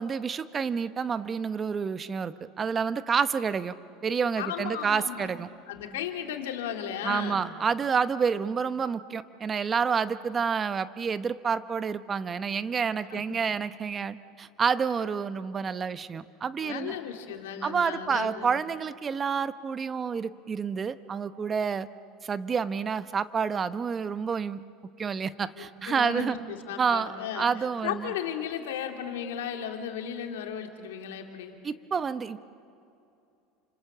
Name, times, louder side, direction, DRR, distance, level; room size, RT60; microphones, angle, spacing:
voice 1, 0.0-3.7 4.0-5.5 7.0-16.9 17.6-21.9 22.2-24.6 25.0-26.4 26.8-28.1 31.6-32.4, right 6 dB, 30° right, 14 dB, 1.0 m, -29 dB
voice 2, 4.4-5.3 5.7-7.5 13.1-13.4 16.6-18.6 25.6-31.6, left 8 dB, 85° left, 4 dB, 2.6 m, -35 dB
29.0 x 26.0 x 7.4 m, 2.6 s
supercardioid pair, 95°, 0 cm